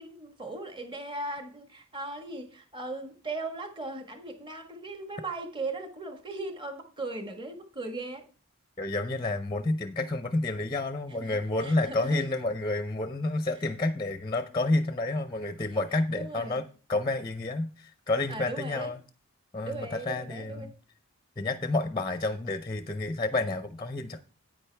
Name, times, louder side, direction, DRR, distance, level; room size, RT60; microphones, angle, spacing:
voice 1, 0.0-8.3 11.1-12.3 15.7-15.8 16.1-16.6 18.3-18.9 19.6-20.7, right 2 dB, 20° right, 1.4 m, -38 dB
voice 2, 8.8-19.0 19.5-20.7 21.4-24.2, left 2 dB, 20° left, 0.6 m, -30 dB
10.0 x 9.1 x 3.4 m
head